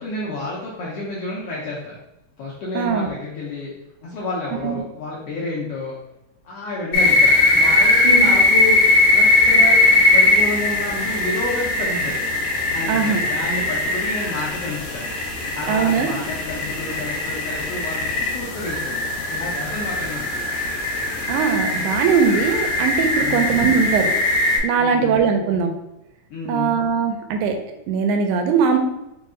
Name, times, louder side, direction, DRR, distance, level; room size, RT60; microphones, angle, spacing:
voice 1, 0.0-1.9 2.4-3.7 4.0-6.0 6.4-8.8 9.1-12.2 12.7-15.0 15.5-20.3 23.2-23.6 24.8-25.2 26.3-26.7, left 2 dB, 85° left, -5 dB, 1.3 m, -30 dB
voice 2, 2.8-3.1 4.6-4.8 8.0-8.3 12.9-13.2 15.7-16.1 21.3-24.1 24.6-25.7 26.5-27.6 27.9-28.8, right 6 dB, 85° right, 4 dB, 2.0 m, -20 dB
sound 1, 6.9-24.6, left 2 dB, 65° left, 1.8 m, -20 dB
4.9 x 2.3 x 3.7 m, 0.91 s
omnidirectional pair, 3.4 m